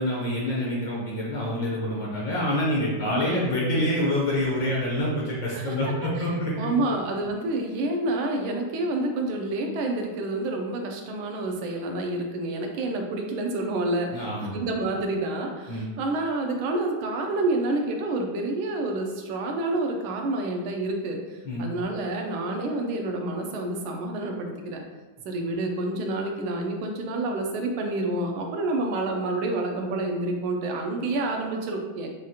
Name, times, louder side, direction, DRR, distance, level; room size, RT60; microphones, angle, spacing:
voice 1, 0.0-7.0 14.1-14.6 15.7-15.9 21.4-21.7, left 1 dB, 65° left, -4 dB, 1.4 m, -27 dB
voice 2, 3.0-3.4 5.5-6.3 6.6-24.8 25.2-32.1, right 2 dB, 80° right, 2 dB, 1.4 m, -28 dB
6.1 x 2.4 x 2.8 m, 1.2 s
omnidirectional pair, 2.3 m